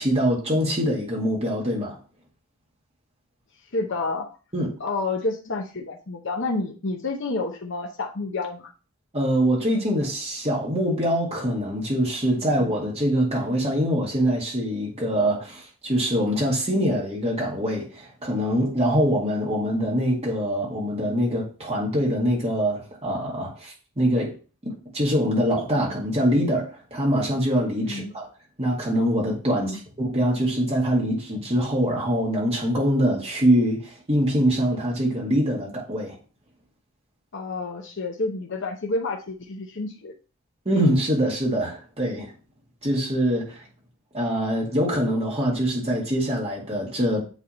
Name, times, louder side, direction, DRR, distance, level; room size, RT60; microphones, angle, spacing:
voice 1, 0.0-2.0 4.5-4.7 9.1-24.3 24.6-28.3 28.6-36.2 40.7-42.3 42.8-43.7 44.1-47.2, equal, 30° right, 1.9 m, -24 dB
voice 2, 3.7-4.4 4.8-8.7 27.8-28.1 29.5-29.8 37.3-40.1, left 3 dB, 60° left, 0.9 m, -29 dB
8.1 x 3.5 x 4.3 m
head